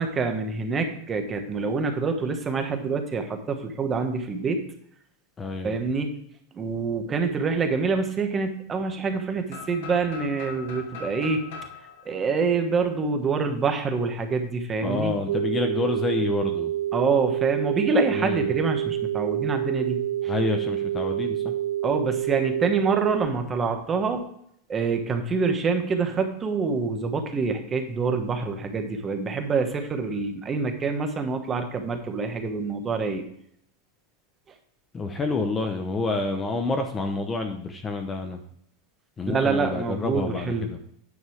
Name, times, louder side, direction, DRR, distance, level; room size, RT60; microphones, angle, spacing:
voice 1, 0.0-4.6 5.6-6.1 6.5-11.4 12.0-15.1 16.9-20.3 21.8-24.2 24.7-33.2 39.3-40.7, right 4 dB, 20° right, 5 dB, 1.1 m, -26 dB
voice 2, 5.4-5.8 14.8-16.7 18.1-18.5 20.3-21.5 34.9-38.4 39.2-40.8, left 3 dB, 15° left, 6 dB, 0.8 m, -28 dB
sound 1, 9.5-13.3, left 5 dB, 70° left, 2.6 m, -41 dB
sound 2, 15.3-23.2, right 12 dB, 85° right, 1.6 m, -28 dB
9.6 x 5.4 x 4.6 m, 0.69 s
supercardioid pair, 150°, 0 cm